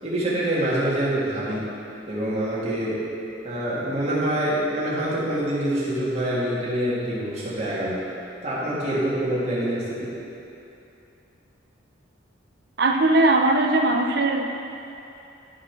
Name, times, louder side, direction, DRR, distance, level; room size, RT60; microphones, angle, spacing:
voice 1, 0.0-1.7 2.1-3.0 3.4-8.0 8.4-10.2, right 1 dB, 30° right, -7 dB, 1.9 m, -25 dB
voice 2, 12.8-14.5, right 2 dB, 55° right, 3 dB, 0.6 m, -19 dB
11.5 x 5.0 x 6.0 m, 2.8 s
head